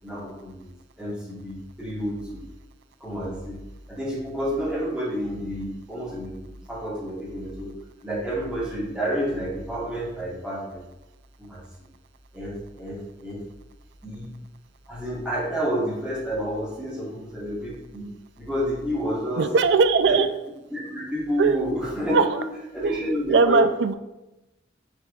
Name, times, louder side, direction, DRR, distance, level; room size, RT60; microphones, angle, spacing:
voice 1, 0.0-0.7 1.0-2.4 3.0-3.6 3.9-6.3 6.7-7.7 8.0-10.8 11.4-11.6 12.3-13.4 14.0-14.3 14.9-19.5 20.0-20.1 20.7-22.5 22.7-23.6, equal, 5° right, -8 dB, 1.4 m, -30 dB
voice 2, 19.4-20.3 21.4-21.7 22.1-22.3 22.8-23.0 23.3-24.0, right 4 dB, 65° right, 11 dB, 0.3 m, -19 dB
6.6 x 3.4 x 2.4 m, 0.98 s
head